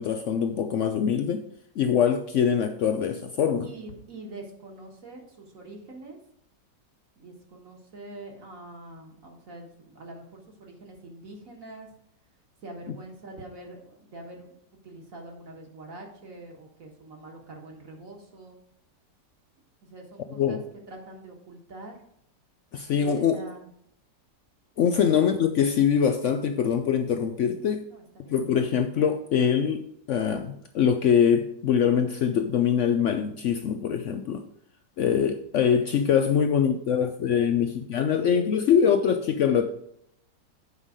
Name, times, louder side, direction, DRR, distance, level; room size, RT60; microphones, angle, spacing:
voice 1, 0.0-1.4 1.8-3.7 20.4-20.6 22.7-23.4 24.8-27.8 28.3-34.4 35.0-39.7, left 8 dB, 85° left, 7 dB, 0.6 m, -23 dB
voice 2, 3.6-6.2 7.2-11.9 12.6-18.6 19.8-20.6 20.9-21.9 23.0-23.7 27.6-28.4, right 2 dB, 50° right, 1 dB, 1.8 m, -44 dB
8.1 x 5.5 x 4.9 m, 0.72 s
omnidirectional pair, 1.9 m